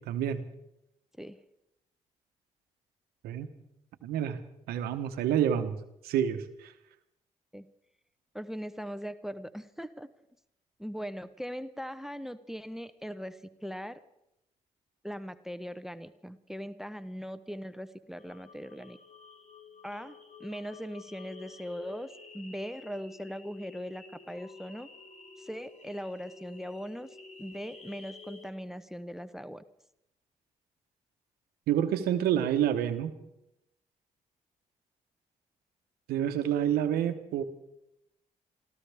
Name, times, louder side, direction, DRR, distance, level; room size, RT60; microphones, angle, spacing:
voice 1, 0.1-0.4 3.2-3.5 4.0-4.4 4.7-5.8 6.0-6.7 31.7-33.1 36.1-37.4, right 10 dB, 85° right, 9 dB, 1.0 m, -28 dB
voice 2, 8.3-10.1 10.8-13.4 13.6-14.0 15.0-19.0 19.8-24.9 25.4-29.6, equal, 5° right, 13 dB, 0.9 m, -40 dB
sound 1, 18.2-28.5, left 5 dB, 45° left, 2.5 m, -51 dB
27.0 x 14.0 x 3.5 m, 0.84 s
supercardioid pair, 50°, 15 cm